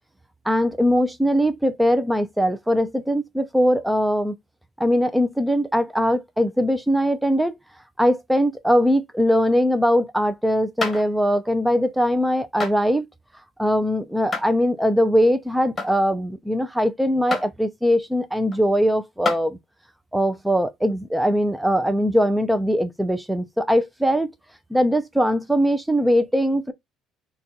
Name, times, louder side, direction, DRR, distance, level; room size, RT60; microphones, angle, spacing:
voice 1, 0.5-4.4 4.8-7.6 8.0-13.1 13.6-19.6 20.1-24.3 24.7-26.7, equal, 5° right, 0.4 m, -21 dB
sound 1, 10.8-11.1 12.6-12.7 14.3-14.5 15.8-16.0 17.3-17.5 18.5-18.6 19.3-19.4 20.9-21.0, left 4 dB, 15° left, 1.1 m, -27 dB
4.2 x 2.3 x 3.8 m
cardioid pair, 150°, 0 cm